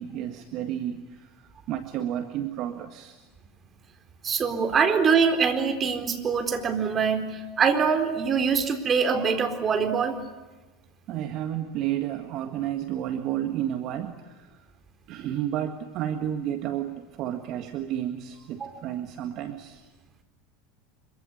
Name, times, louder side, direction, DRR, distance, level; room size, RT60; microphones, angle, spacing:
voice 1, 0.0-3.3 11.1-14.7 15.1-19.9, right 11 dB, 50° right, 7 dB, 1.8 m, -31 dB
voice 2, 4.2-10.2 18.6-18.7, right 6 dB, 30° right, 7 dB, 4.1 m, -24 dB
25.5 x 24.5 x 9.3 m, 1.2 s
hypercardioid pair, 85°, 0 cm